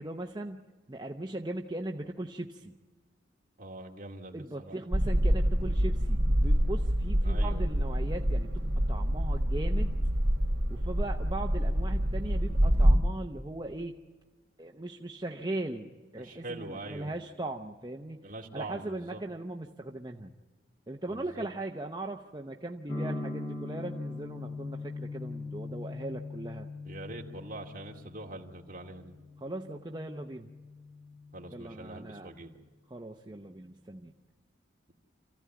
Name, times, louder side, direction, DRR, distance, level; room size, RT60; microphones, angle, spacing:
voice 1, 0.0-2.8 4.3-10.0 10.7-14.0 14.6-18.2 18.5-20.3 20.9-26.7 29.4-30.5 31.5-32.3 32.9-34.1, right 2 dB, 20° right, 2 dB, 0.7 m, -39 dB
voice 2, 3.6-4.8 7.2-7.7 16.2-17.1 18.2-19.2 21.1-21.5 26.8-29.1 31.3-32.5, right 2 dB, 45° right, 0 dB, 2.4 m, -43 dB
sound 1, 4.9-13.0, equal, 75° right, 2.9 m, -26 dB
sound 2, 22.9-32.7, left 3 dB, 15° left, 1.6 m, -41 dB
27.0 x 15.0 x 9.3 m, 1.4 s
head